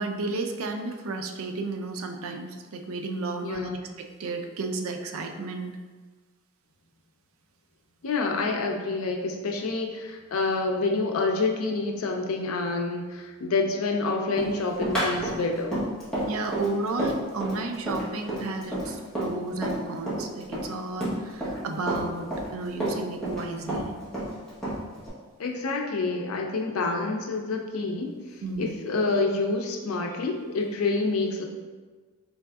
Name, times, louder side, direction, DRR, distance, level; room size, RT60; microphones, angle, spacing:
voice 1, 0.0-5.8 16.3-23.9 28.4-28.8, right 3 dB, 80° right, 5 dB, 0.4 m, -33 dB
voice 2, 3.4-3.9 8.0-15.8 25.4-28.1 28.6-31.4, left 3 dB, 90° left, 2 dB, 0.5 m, -27 dB
Run, 14.4-19.8 20.1-21.6 21.9-23.4 23.7-25.1, right 1 dB, 5° left, 0.9 m, -30 dB
4.0 x 3.4 x 2.3 m, 1.4 s
head